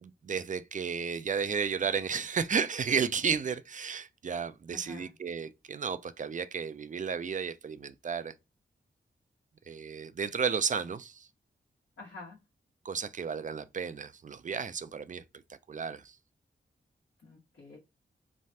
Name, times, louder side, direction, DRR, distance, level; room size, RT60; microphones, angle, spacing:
voice 1, 0.0-8.3 9.7-11.3 12.8-15.2 15.7-16.2, right 6 dB, 40° right, 0.4 m, -33 dB
voice 2, 4.7-5.1 12.0-12.4 17.2-17.8, left 3 dB, 70° left, 1.4 m, -48 dB
3.2 x 2.2 x 2.8 m
cardioid pair, 45°, 20 cm